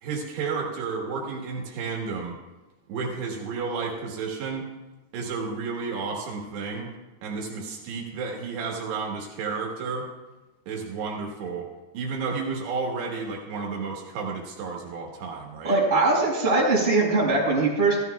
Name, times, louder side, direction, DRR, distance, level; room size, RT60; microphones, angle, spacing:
voice 1, 0.0-2.4 2.9-4.7 5.1-6.9 7.2-10.1 10.7-11.7 11.9-15.8, right 4 dB, 80° right, -1 dB, 3.5 m, -32 dB
voice 2, 15.6-18.0, right 3 dB, 15° right, -5 dB, 4.3 m, -21 dB
15.5 x 13.5 x 2.3 m, 1.1 s
omnidirectional pair, 4.8 m